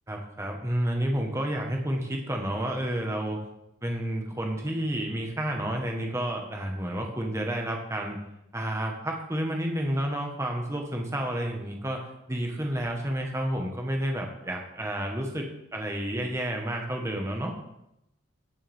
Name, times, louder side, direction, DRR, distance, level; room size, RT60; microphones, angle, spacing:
voice 1, 0.1-3.4 3.8-8.2 8.5-17.5, right 1 dB, 15° right, 1 dB, 1.4 m, -30 dB
16.0 x 6.8 x 3.6 m, 0.84 s
head